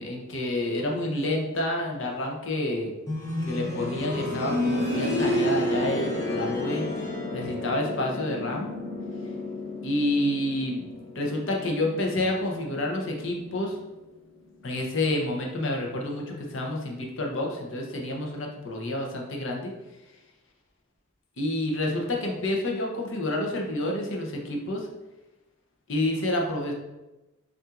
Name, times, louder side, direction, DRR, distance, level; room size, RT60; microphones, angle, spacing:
voice 1, 0.0-2.9 3.4-7.1 7.3-8.7 9.8-10.8 11.1-13.8 14.6-19.7 21.4-24.9 25.9-26.7, left 1 dB, 60° left, 0 dB, 0.7 m, -29 dB
sound 1, 3.1-13.8 15.2-15.3, left 1 dB, 15° left, 0.7 m, -31 dB
5.5 x 2.6 x 2.4 m, 1.1 s
head